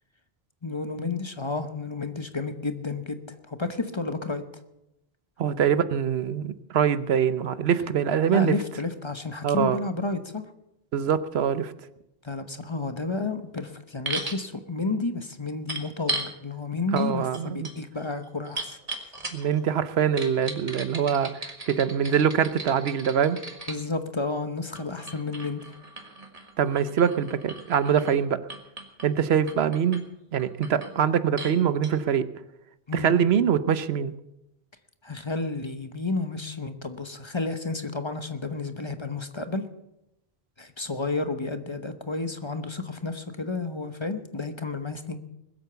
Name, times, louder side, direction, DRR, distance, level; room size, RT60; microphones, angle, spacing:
voice 1, 0.6-4.4 8.3-10.5 12.2-19.0 23.7-25.7 32.9-33.1 35.0-39.7 40.6-45.2, left 3 dB, 30° left, 8 dB, 1.0 m, -31 dB
voice 2, 5.4-8.5 9.4-9.8 10.9-11.7 16.9-17.7 19.3-23.4 26.6-28.4 29.0-30.0 30.3-32.3 32.9-34.1, right 8 dB, 85° right, 13 dB, 1.0 m, -24 dB
sound 1, 14.1-14.4 15.7-16.3 17.0-17.1 17.3-19.6 20.2-23.8 24.8-28.2 28.5-29.1 29.5-30.0 30.4-30.9 31.4-31.6 31.8-31.9, right 2 dB, 35° right, 1.8 m, -36 dB
20.5 x 8.2 x 6.8 m, 0.86 s
omnidirectional pair, 1.0 m